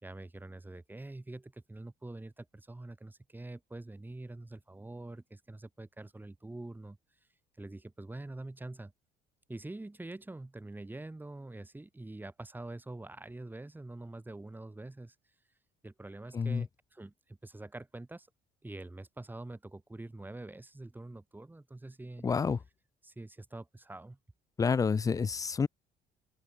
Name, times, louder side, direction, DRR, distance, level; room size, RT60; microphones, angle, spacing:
voice 1, 0.0-7.0 7.6-8.9 9.5-15.1 15.8-18.3 18.6-22.3 23.0-24.2, right 2 dB, 10° right, 6.2 m, -45 dB
voice 2, 22.2-22.6 24.6-25.7, left 5 dB, 20° left, 0.4 m, -28 dB
open air
cardioid pair, 110°, 17 cm